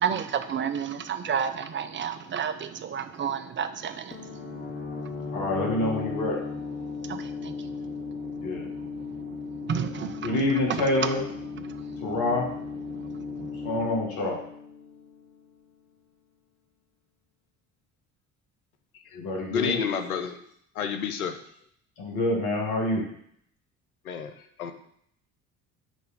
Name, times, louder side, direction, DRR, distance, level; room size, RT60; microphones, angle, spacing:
voice 1, 0.0-4.7 7.0-7.5 9.6-10.2 11.7-11.8 13.1-13.5, right 7 dB, 30° right, 10 dB, 0.5 m, -31 dB
sound 1, 4.1-15.6, left 5 dB, 20° left, 1.2 m, -37 dB
voice 2, 5.3-6.4 8.4-8.7 10.2-11.2 12.0-12.5 13.5-14.4 19.1-19.8 22.0-23.0, left 2 dB, 60° left, -2 dB, 2.0 m, -27 dB
voice 3, 19.5-20.4 20.7-21.4 24.0-24.7, left 7 dB, 90° left, 8 dB, 0.6 m, -30 dB
6.2 x 3.3 x 5.1 m, 0.68 s
hypercardioid pair, 55°, 42 cm